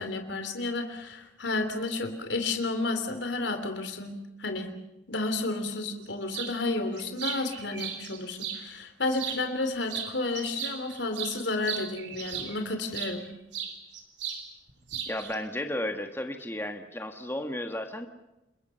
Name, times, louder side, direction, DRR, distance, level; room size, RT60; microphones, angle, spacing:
voice 1, 0.0-4.7 5.1-13.2, left 2 dB, 75° left, 7 dB, 3.2 m, -31 dB
sound 1, 6.3-6.5 7.0-8.6 9.1-9.6 9.9-13.2 13.5-14.4 14.7-15.4, right 8 dB, 80° right, 3.7 m, -36 dB
voice 2, 15.1-18.1, left 1 dB, 15° left, 5 dB, 1.6 m, -33 dB
29.5 x 21.5 x 5.7 m, 0.94 s
head